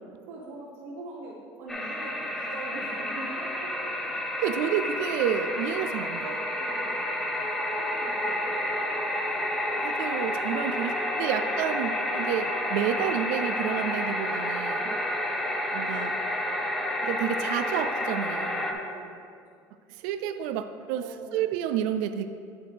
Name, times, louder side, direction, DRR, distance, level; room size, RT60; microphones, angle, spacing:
voice 1, 0.3-3.9 6.6-7.1 7.7-8.5 11.3-11.5 14.7-14.8 18.5-19.2 21.0-21.5, right 2 dB, 65° right, -5 dB, 1.1 m, -43 dB
sound 1, 1.7-18.7, left 1 dB, 5° left, 0.5 m, -30 dB
voice 2, 4.4-6.5 9.8-14.9 15.7-16.2 17.0-18.8 19.9-22.3, right 9 dB, 90° right, 9 dB, 0.4 m, -30 dB
10.0 x 4.9 x 3.4 m, 2.3 s
cardioid pair, 175°, 7 cm